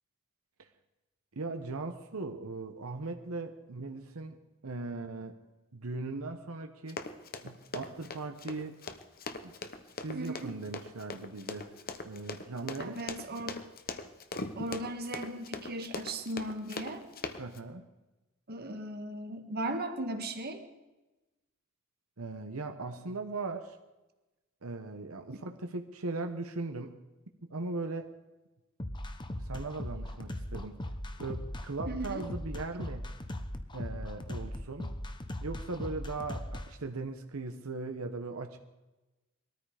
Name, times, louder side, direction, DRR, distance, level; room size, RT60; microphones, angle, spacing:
voice 1, 1.3-5.4 5.7-7.0 7.4-8.8 9.4-9.5 10.0-11.7 12.0-13.0 17.4-17.8 22.2-23.8 24.6-26.9 27.5-28.2 29.3-30.8 31.2-33.1 33.7-34.9 35.4-38.6, right 3 dB, 90° right, 5 dB, 1.1 m, -39 dB
Run, 6.9-17.6, left 3 dB, 45° left, 1.0 m, -40 dB
voice 2, 10.1-10.5 12.8-13.6 14.6-17.0 18.5-20.6 31.9-32.2, right 1 dB, 50° right, 6 dB, 1.7 m, -37 dB
sound 1, 28.8-36.7, left 1 dB, 20° left, 1.0 m, -38 dB
21.0 x 13.5 x 5.0 m, 1.1 s
head